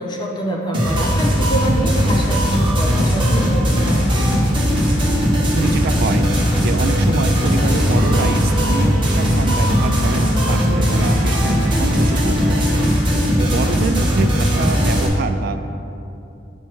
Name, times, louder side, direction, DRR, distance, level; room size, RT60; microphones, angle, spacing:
voice 1, 0.0-4.1, right 1 dB, 20° left, -1 dB, 0.8 m, -26 dB
sound 1, 0.7-15.1, equal, 25° right, 1.1 m, -18 dB
sound 2, 2.8-8.3, left 1 dB, 85° left, 0.5 m, -28 dB
voice 2, 5.5-6.3 6.6-12.7 13.4-15.6, right 4 dB, 55° right, 9 dB, 0.3 m, -25 dB
sound 3, 7.5-12.6, left 2 dB, 75° right, 1.0 m, -30 dB
9.7 x 4.4 x 3.1 m, 2.8 s
head